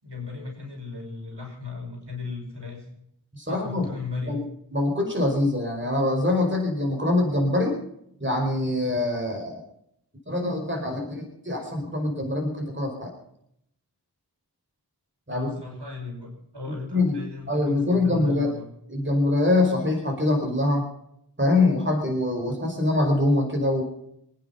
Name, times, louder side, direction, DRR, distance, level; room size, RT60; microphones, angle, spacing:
voice 1, 0.0-2.9 3.5-4.4 15.3-18.7, left 4 dB, 75° right, 0 dB, 5.8 m, -36 dB
voice 2, 3.3-3.9 4.2-4.4 4.7-7.8 8.2-9.6 10.2-13.1 15.3-15.5 16.9-17.2 17.5-18.5 18.9-20.9 21.4-23.8, left 2 dB, 30° right, 2 dB, 4.9 m, -24 dB
26.0 x 9.9 x 5.7 m, 0.74 s
wide cardioid pair, 50°, 41 cm